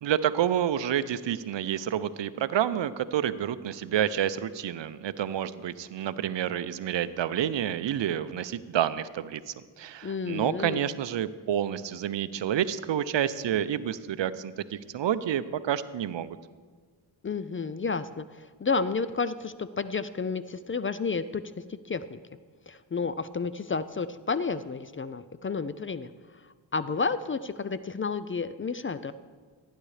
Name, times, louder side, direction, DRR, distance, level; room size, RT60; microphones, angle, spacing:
voice 1, 0.0-9.4 9.8-16.4, right 10 dB, 65° right, 14 dB, 0.6 m, -29 dB
voice 2, 10.0-10.8 17.2-22.2 22.7-26.1 26.7-29.1, left 4 dB, 30° left, 13 dB, 0.4 m, -31 dB
14.5 x 10.0 x 3.3 m, 1.5 s
cardioid pair, 50°, 47 cm